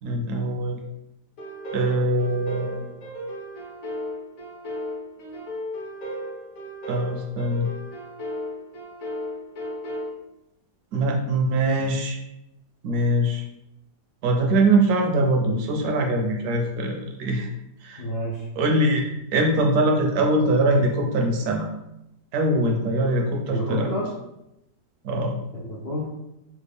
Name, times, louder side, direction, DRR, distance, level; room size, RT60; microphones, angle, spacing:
voice 1, 0.0-0.8 1.7-2.9 6.9-7.7 10.9-12.2 12.8-13.4 14.2-17.5 17.8-18.0 18.6-19.0 19.3-21.7 22.3-23.9 25.0-25.4, right 1 dB, 70° right, 1 dB, 1.0 m, -22 dB
sound 1, 1.4-10.1, equal, 60° left, 1.0 m, -35 dB
voice 2, 18.0-18.5 23.5-24.1 25.5-26.1, equal, 85° left, -5 dB, 0.5 m, -29 dB
3.3 x 2.3 x 3.3 m, 0.87 s
omnidirectional pair, 1.8 m